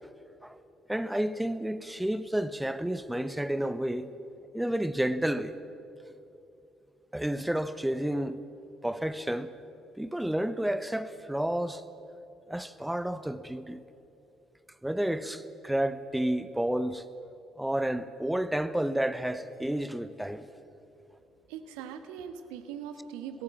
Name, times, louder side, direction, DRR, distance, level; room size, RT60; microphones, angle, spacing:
voice 1, 0.9-4.1 4.5-5.6 7.1-8.4 8.8-9.5 10.0-11.8 12.5-13.8 14.8-17.0 17.6-20.5, right 1 dB, 5° right, 1.1 m, -30 dB
voice 2, 21.5-23.4, right 8 dB, 70° right, 1.4 m, -41 dB
21.5 x 17.5 x 7.2 m
figure-of-eight pair, 50°, 0 cm